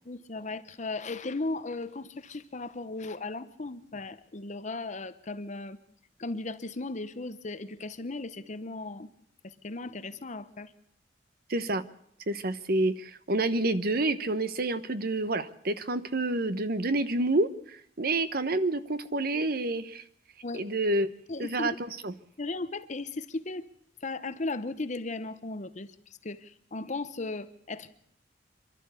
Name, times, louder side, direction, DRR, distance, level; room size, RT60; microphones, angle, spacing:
voice 1, 0.1-5.8 6.2-9.1 9.4-10.7 20.4-20.6 21.3-21.8 22.4-23.7 24.0-25.9 26.2-27.9, left 3 dB, 40° left, 12 dB, 0.9 m, -36 dB
voice 2, 11.5-11.8 12.3-20.0 20.5-21.1 21.4-21.7 22.0-22.1, right 2 dB, 55° right, 12 dB, 1.1 m, -28 dB
26.5 x 12.0 x 8.3 m, 0.69 s
head